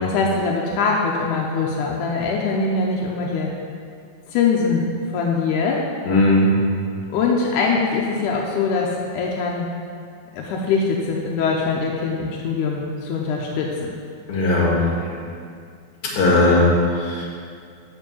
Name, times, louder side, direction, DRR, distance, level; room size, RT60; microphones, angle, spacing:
voice 1, 0.0-3.5 4.3-4.9 5.1-5.8 7.1-9.7 10.3-13.9, left 4 dB, 80° left, -2 dB, 1.8 m, -22 dB
voice 2, 6.1-6.5 14.3-14.8 16.2-16.7 17.0-17.3, left 2 dB, 45° left, -4 dB, 1.9 m, -17 dB
6.9 x 5.5 x 7.0 m, 2.3 s
omnidirectional pair, 4.3 m